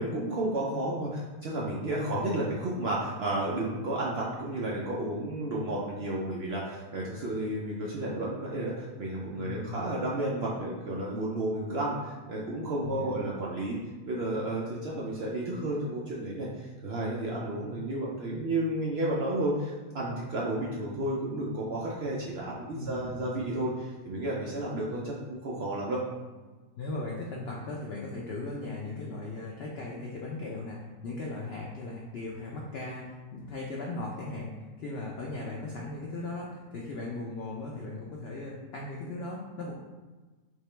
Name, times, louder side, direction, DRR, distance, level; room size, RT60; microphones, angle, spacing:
voice 1, 0.0-13.8 14.1-26.0, right 1 dB, 65° right, -5 dB, 0.6 m, -32 dB
voice 2, 2.1-2.5 9.3-9.8 12.8-13.2 22.7-23.2 26.8-39.7, left 2 dB, 75° left, -2 dB, 0.5 m, -38 dB
3.7 x 2.8 x 3.2 m, 1.3 s
omnidirectional pair, 1.6 m